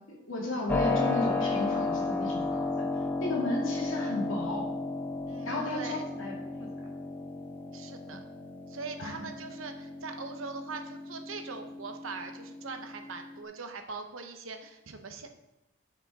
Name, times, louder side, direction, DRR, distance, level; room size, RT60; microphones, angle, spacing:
voice 1, 0.1-2.9 3.2-4.7 5.4-6.3 6.6-6.7 9.0-9.3, left 1 dB, 75° left, -3 dB, 2.2 m, -34 dB
Keyboard (musical), 0.7-13.4, left 3 dB, 10° left, 0.5 m, -34 dB
voice 2, 5.3-6.0 7.7-8.2 8.7-15.3, right 4 dB, 80° right, 6 dB, 0.9 m, -41 dB
9.6 x 5.2 x 3.6 m, 0.91 s
head